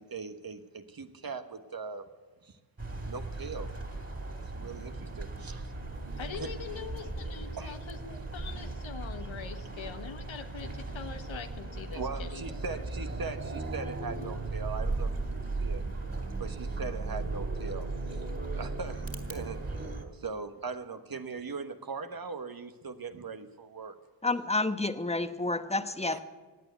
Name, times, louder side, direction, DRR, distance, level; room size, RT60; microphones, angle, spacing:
voice 1, 0.0-2.0 2.4-2.6 3.0-3.7 4.5-5.7 6.3-6.5 7.6-7.8 11.9-15.8 16.4-18.2 18.6-23.9 26.1-26.2, right 4 dB, 45° right, 8 dB, 1.3 m, -40 dB
sound 1, 2.8-20.0, right 3 dB, 30° right, 3.0 m, -37 dB
voice 2, 6.2-12.8, left 6 dB, 75° left, 7 dB, 1.4 m, -43 dB
voice 3, 24.2-26.2, left 2 dB, 15° left, 9 dB, 1.1 m, -29 dB
16.5 x 9.2 x 8.1 m, 1.3 s
cardioid pair, 55°, 47 cm